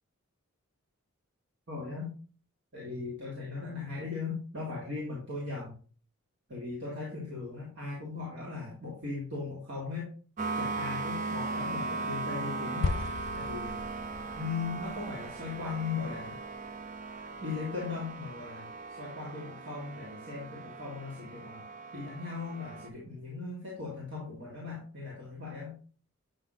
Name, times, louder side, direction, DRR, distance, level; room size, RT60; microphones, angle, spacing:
voice 1, 1.7-2.1 2.7-5.7 6.5-10.1 10.5-13.0 13.3-13.8 14.3-16.4 17.4-18.7 19.0-21.6 21.9-25.8, left 4 dB, 55° right, -5 dB, 1.8 m, -38 dB
sound 1, 10.4-22.9, right 3 dB, 35° right, 0.4 m, -38 dB
sound 2, 12.8-17.2, left 3 dB, 55° left, 0.5 m, -38 dB
7.5 x 5.9 x 2.4 m, 0.40 s
head